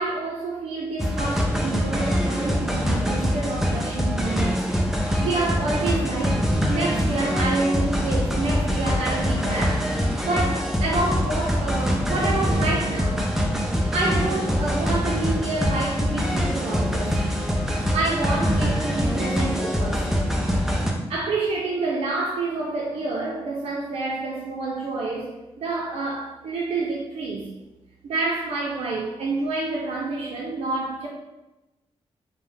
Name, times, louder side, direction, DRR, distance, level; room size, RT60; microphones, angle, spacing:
voice 1, 0.0-4.6 5.2-9.9 10.2-13.3 13.9-17.2 17.9-20.1 21.1-27.5 28.0-31.1, right 3 dB, 70° right, -3 dB, 0.4 m, -28 dB
sound 1, 1.0-20.9, equal, 5° right, 0.4 m, -24 dB
2.3 x 2.0 x 3.1 m, 1.0 s
cardioid pair, 85°, 11 cm